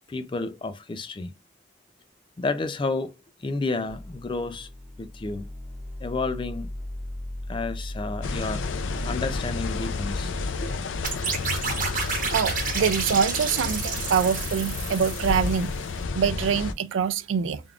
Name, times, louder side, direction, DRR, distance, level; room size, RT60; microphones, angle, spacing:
voice 1, 0.1-1.3 2.4-3.1 3.4-4.7 5.0-5.5 6.0-6.7 7.5-8.7 9.0-10.7, left 3 dB, 25° left, 0.4 m, -31 dB
sound 1, 3.9-10.7, left 1 dB, 5° right, 1.5 m, -36 dB
sound 2, 8.2-16.7, left 4 dB, 90° left, 0.4 m, -31 dB
sound 3, 11.0-15.9, right 5 dB, 45° right, 1.1 m, -31 dB
voice 2, 12.3-15.7 16.1-17.6, right 7 dB, 80° right, 0.4 m, -25 dB
3.5 x 3.4 x 2.4 m
head